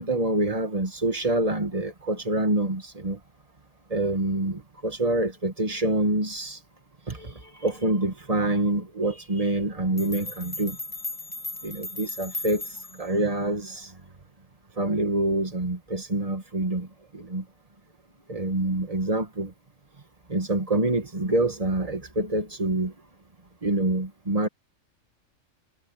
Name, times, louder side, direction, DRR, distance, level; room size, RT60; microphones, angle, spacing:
voice 1, 0.0-3.2 3.9-6.6 7.1-10.8 11.6-12.6 13.0-13.9 14.8-16.9 17.1-17.4 18.3-19.5 20.3-22.9 23.6-24.5, right 2 dB, 25° right, 2.1 m, -26 dB
sound 1, 10.0-13.1, left 2 dB, 15° left, 1.3 m, -36 dB
omnidirectional pair, 1.4 m